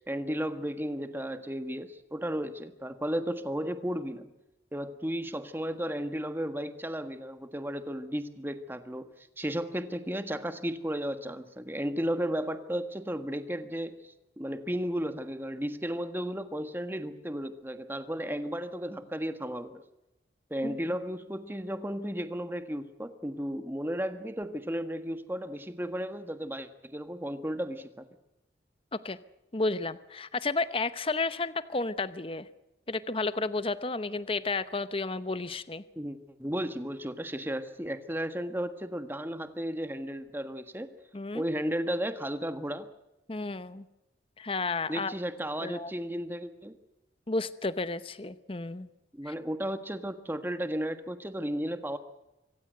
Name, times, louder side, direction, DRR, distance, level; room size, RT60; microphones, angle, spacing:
voice 1, 0.0-4.3 4.7-9.1 9.4-19.8 20.5-28.1 35.9-40.9 41.3-42.9 44.9-46.8 49.1-52.0, equal, 10° right, 9 dB, 1.5 m, -34 dB
voice 2, 29.5-32.5 32.9-35.8 41.1-41.4 43.3-43.8 44.4-45.1 45.6-45.9 47.3-48.9 49.2-49.3, left 3 dB, 30° left, 14 dB, 0.8 m, -32 dB
25.0 x 16.0 x 8.0 m, 0.95 s
head